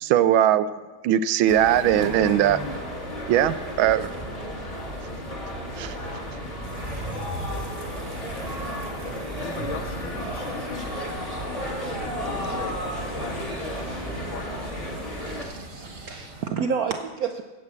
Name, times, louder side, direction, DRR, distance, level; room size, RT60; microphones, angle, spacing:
voice 1, 0.0-0.7 1.0-2.6 3.3-4.1 5.8-6.0, right 11 dB, 90° right, 1.4 m, -20 dB
sound 1, 1.5-15.4, equal, 20° left, 1.6 m, -33 dB
sound 2, 6.6-16.5, right 2 dB, 25° right, 1.4 m, -41 dB
voice 2, 9.4-11.3 12.3-14.0 14.3-14.8, left 6 dB, 75° left, 1.6 m, -40 dB
voice 3, 15.2-17.4, right 6 dB, 70° right, 0.8 m, -30 dB
9.5 x 8.3 x 7.4 m
omnidirectional pair, 2.1 m